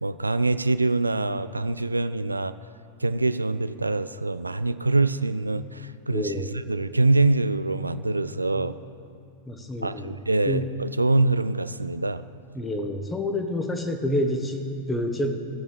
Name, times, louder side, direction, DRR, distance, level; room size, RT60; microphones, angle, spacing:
voice 1, 0.0-2.5 3.0-6.3 6.7-8.7 9.8-12.2, right 2 dB, 80° right, 13 dB, 0.3 m, -24 dB
voice 2, 6.1-6.5 8.5-8.7 9.4-10.1 10.5-10.7 12.5-15.4, left 1 dB, 10° left, 5 dB, 1.3 m, -28 dB
14.5 x 7.0 x 8.0 m, 2.4 s
figure-of-eight pair, 90°, 0 cm